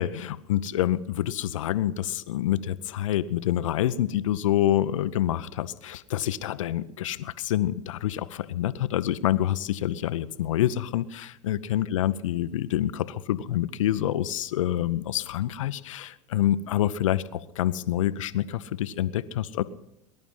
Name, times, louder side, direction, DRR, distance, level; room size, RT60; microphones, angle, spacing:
voice 1, 0.0-19.6, left 12 dB, 75° left, 15 dB, 0.7 m, -27 dB
20.5 x 11.0 x 5.6 m, 0.84 s
hypercardioid pair, 90°, 17 cm